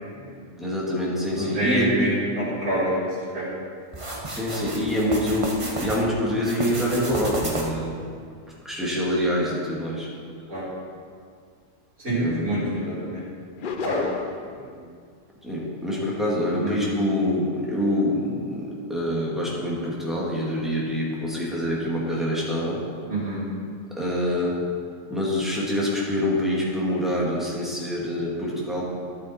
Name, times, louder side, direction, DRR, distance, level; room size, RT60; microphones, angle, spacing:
voice 1, 0.6-2.1 2.5-2.6 4.2-8.0 8.6-10.1 12.1-12.7 15.4-22.8 24.0-24.6 25.1-28.8, left 1 dB, ahead, -6 dB, 2.0 m, -26 dB
voice 2, 1.4-3.1 3.3-3.4 10.5-10.6 12.0-13.2 13.6-14.0 16.6-16.8 23.1-23.4, right 1 dB, 70° right, -11 dB, 3.5 m, -27 dB
sound 1, 3.9-6.0 6.4-7.9, right 2 dB, 25° right, 1.0 m, -32 dB
sound 2, 13.6-14.5, left 5 dB, 50° left, 0.7 m, -29 dB
11.5 x 7.3 x 4.4 m, 2.1 s
omnidirectional pair, 1.4 m